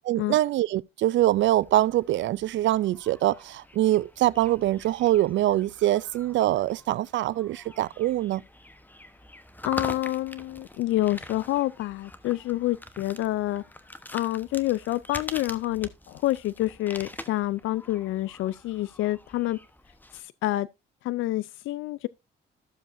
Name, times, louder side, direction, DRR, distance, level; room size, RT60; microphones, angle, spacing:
voice 1, 0.1-8.4, right 14 dB, 70° right, 0.4 m, -24 dB
sound 1, 1.2-20.2, left 1 dB, 10° left, 1.0 m, -45 dB
voice 2, 9.6-13.6 14.1-19.6 20.1-20.7 21.0-22.1, left 16 dB, 80° left, 0.4 m, -28 dB
14.0 x 7.2 x 2.6 m
cardioid pair, 90°, 20 cm